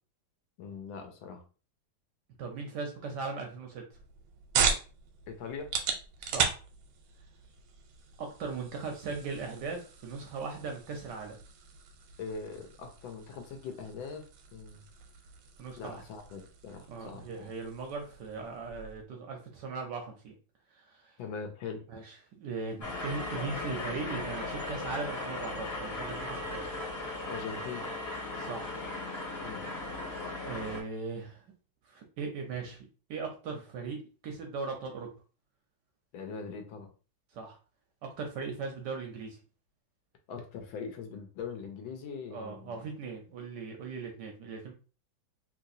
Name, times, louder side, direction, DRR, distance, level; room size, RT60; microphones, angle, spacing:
voice 1, 0.6-1.4 5.3-5.7 12.2-14.8 15.8-17.5 21.2-22.0 27.3-27.9 29.4-29.7 36.1-36.9 40.3-42.9, left 5 dB, 75° left, 5 dB, 1.4 m, -42 dB
voice 2, 2.4-3.8 6.2-6.6 8.2-11.4 15.6-16.0 16.9-20.3 20.7-21.2 21.9-26.7 28.4-28.7 30.4-31.4 31.8-35.1 37.3-37.6 38.0-39.4 42.3-44.7, right 4 dB, 70° right, 2 dB, 1.1 m, -39 dB
sound 1, 3.9-19.0, right 6 dB, 90° right, 1.5 m, -37 dB
sound 2, 22.8-30.8, left 2 dB, 35° left, 1.2 m, -37 dB
3.2 x 2.9 x 2.6 m, 0.36 s
omnidirectional pair, 2.3 m